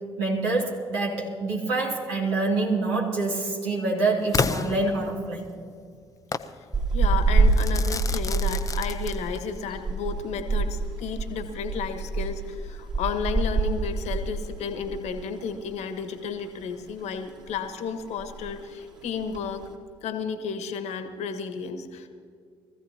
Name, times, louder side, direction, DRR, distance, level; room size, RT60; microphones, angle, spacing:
voice 1, 0.2-5.5, right 3 dB, 75° right, -3 dB, 3.0 m, -26 dB
Crackle / Fireworks, 4.3-5.5 6.3-6.6 7.5-9.5, left 4 dB, 25° left, 0.7 m, -30 dB
sound 1, 6.7-15.3 15.5-15.7 16.1-17.0 17.3-17.7 17.9-18.0 18.2-18.6 19.2-19.7, right 3 dB, 35° right, 3.1 m, -26 dB
voice 2, 6.9-19.6 20.0-22.1, left 6 dB, 60° left, 8 dB, 1.5 m, -32 dB
23.0 x 15.0 x 3.0 m, 2.2 s
hypercardioid pair, 50°, 13 cm